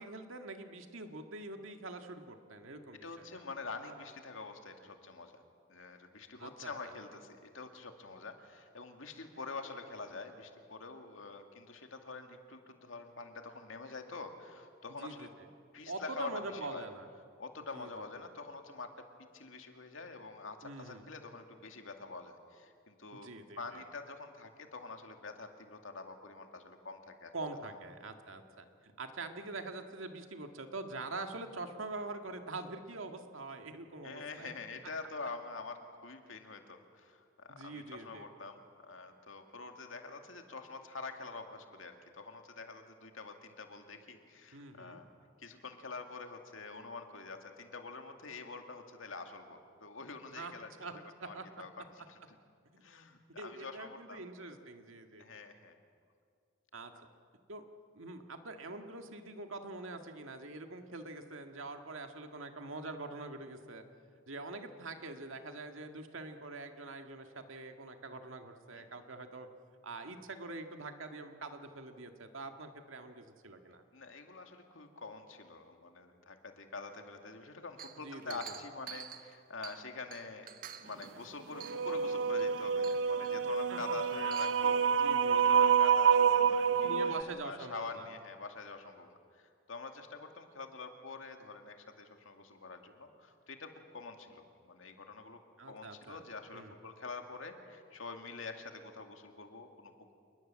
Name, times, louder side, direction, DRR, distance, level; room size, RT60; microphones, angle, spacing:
voice 1, 0.0-3.3 6.4-6.7 15.0-15.3 15.9-17.1 17.7-18.3 20.6-21.0 23.1-23.8 27.3-28.7 29.0-34.5 37.5-38.3 44.5-45.0 50.3-51.5 52.7-52.8 53.3-55.4 56.7-56.9 57.5-57.6 57.9-63.8 64.3-69.5 69.8-73.8 78.0-78.6 83.7-83.8 85.0-85.6 86.7-88.1 95.6-96.2 96.5-96.7, right 2 dB, 85° right, 5 dB, 2.0 m, -44 dB
voice 2, 3.0-5.4 5.7-15.3 15.7-16.9 17.4-18.9 19.3-23.3 23.6-27.3 27.6-27.8 34.0-45.1 45.4-50.7 51.2-52.2 52.8-54.2 55.2-55.7 68.7-68.9 73.9-80.5 80.8-95.4 95.7-100.1, left 3 dB, 80° left, 5 dB, 2.3 m, -46 dB
Chink clink, 77.8-79.9 80.1-81.1 81.6-82.0 82.4-82.5 82.8-83.3 84.1-84.6, right 9 dB, 45° right, 1.1 m, -48 dB
sound 1, 81.6-87.2, right 7 dB, 65° right, 0.6 m, -28 dB
27.5 x 20.5 x 7.6 m, 2.3 s
head